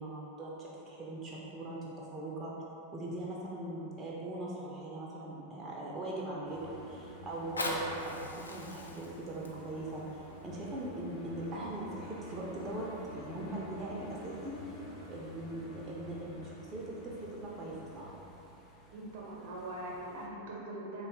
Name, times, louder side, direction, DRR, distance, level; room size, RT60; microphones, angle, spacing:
voice 1, 0.0-2.5 2.9-10.0 10.4-12.9 13.1-14.5 15.1-18.1, right 1 dB, 20° right, -5 dB, 0.4 m, -40 dB
sound 1, 6.4-20.3, equal, 30° left, 0.6 m, -60 dB
sound 2, 6.5-18.1, left 1 dB, 60° left, 0.8 m, -49 dB
Fire, 7.3-12.3 12.9-13.0, left 1 dB, 80° left, 0.4 m, -42 dB
voice 2, 18.9-21.1, right 1 dB, 60° right, -4 dB, 0.7 m, -42 dB
3.5 x 2.2 x 3.9 m, 3.0 s
figure-of-eight pair, 90°, 0 cm